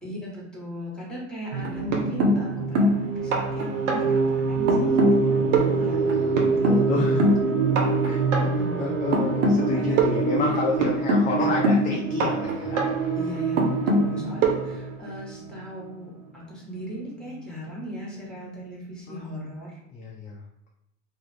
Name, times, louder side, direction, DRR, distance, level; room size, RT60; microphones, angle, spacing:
voice 1, 0.0-7.2 7.5-7.6 8.4-9.0 9.6-10.6 13.1-19.7, equal, ahead, -4 dB, 1.0 m, -38 dB
sound 1, 1.5-15.5 16.8-16.9 17.2-17.4, right 2 dB, 80° right, 0.7 m, -23 dB
voice 2, 5.5-6.2 6.7-7.2 8.0-8.2 8.7-12.8 19.1-19.2 19.9-20.4, left 3 dB, 25° left, -2 dB, 0.4 m, -29 dB
2.4 x 2.0 x 3.0 m, 0.80 s
hypercardioid pair, 95°, 37 cm